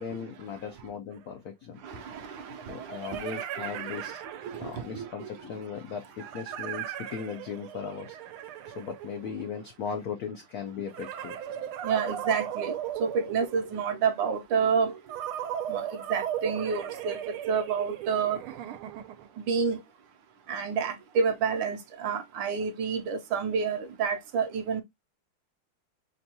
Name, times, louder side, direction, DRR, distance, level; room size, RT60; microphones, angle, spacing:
voice 1, 0.0-2.2 2.7-4.2 4.6-8.2 8.7-11.4, left 6 dB, 85° left, 0.8 m, -38 dB
sound 1, 1.1-1.2 2.6-5.0 6.2-9.7 10.9-13.9 15.1-19.4, right 10 dB, 90° right, 1.5 m, -37 dB
voice 2, 1.8-5.3 11.8-12.7 13.0-14.9 15.7-17.2 17.5-18.4 19.4-19.8 20.5-24.8, right 6 dB, 70° right, 1.2 m, -29 dB
5.4 x 2.2 x 2.7 m
omnidirectional pair, 2.3 m